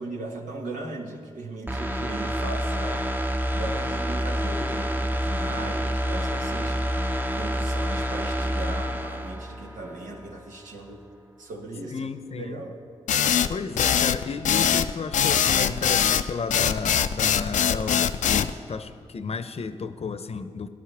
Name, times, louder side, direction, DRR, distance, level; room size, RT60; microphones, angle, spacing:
voice 1, 0.0-3.1 3.5-11.0 11.4-12.1 12.4-12.8, right 2 dB, 85° right, 1 dB, 1.6 m, -38 dB
sound 1, 1.7-10.3 10.7-10.8, equal, 15° right, 0.8 m, -28 dB
voice 2, 11.9-12.6 13.5-20.7, left 5 dB, 55° left, 12 dB, 0.8 m, -32 dB
sound 2, 13.1-18.5, left 8 dB, 80° left, 0.5 m, -22 dB
18.0 x 11.5 x 3.5 m, 2.3 s
cardioid pair, 50°, 13 cm